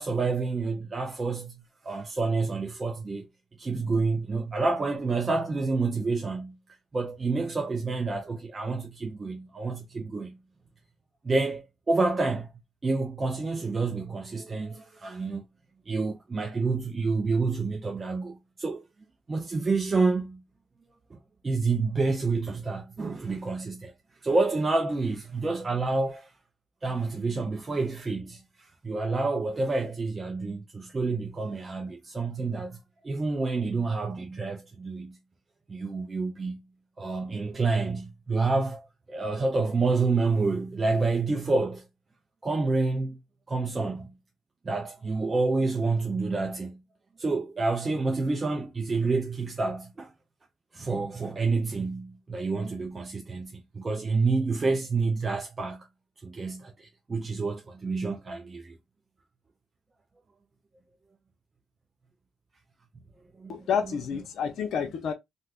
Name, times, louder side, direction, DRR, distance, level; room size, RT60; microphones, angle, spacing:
voice 1, 0.0-3.3 3.6-6.6 6.9-10.4 11.2-12.5 12.8-15.4 15.9-18.8 19.3-20.4 21.1-21.2 21.4-23.9 24.2-26.3 26.8-32.8 33.0-35.2 35.7-36.6 37.0-41.8 42.4-43.2 43.5-44.1 44.6-46.8 47.2-50.1 50.7-55.9 56.2-58.7 63.4-63.6, right 3 dB, 30° right, 0.6 m, -28 dB
voice 2, 63.5-65.1, left 7 dB, 70° left, 0.6 m, -29 dB
2.6 x 2.3 x 3.4 m
cardioid pair, 90°, 0 cm